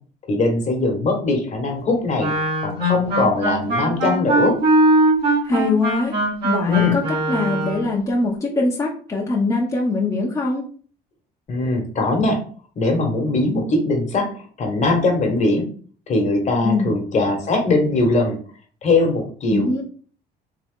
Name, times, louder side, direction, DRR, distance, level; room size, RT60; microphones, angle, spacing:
voice 1, 0.3-2.3 2.6-4.6 6.7-7.0 11.5-12.4 12.8-14.3 14.6-15.7 16.1-18.4 18.8-19.8, left 2 dB, 45° left, 3 dB, 1.3 m, -20 dB
Wind instrument woodwind instrument, 2.2-7.9, right 1 dB, 70° right, 2.1 m, -20 dB
voice 2, 5.4-6.1 6.4-7.0 7.3-10.6 16.6-16.9 19.5-19.8, left 3 dB, 20° left, -3 dB, 0.8 m, -22 dB
3.7 x 2.9 x 3.6 m, 0.43 s
cardioid pair, 110°, 17 cm